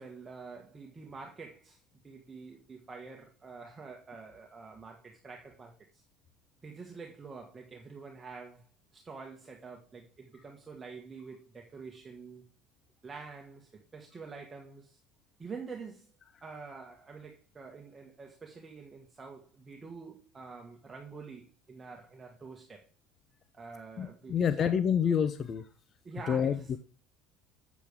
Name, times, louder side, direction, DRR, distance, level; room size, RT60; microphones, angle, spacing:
voice 1, 0.0-6.0 6.6-8.6 8.9-12.4 13.0-15.0 15.4-16.1 16.4-22.9 23.5-24.7 26.0-26.7, right 4 dB, 20° right, 1.5 m, -47 dB
voice 2, 24.0-25.7 26.3-26.6, left 7 dB, 40° left, 0.6 m, -28 dB
8.3 x 7.3 x 3.5 m
supercardioid pair, 110°, 0 cm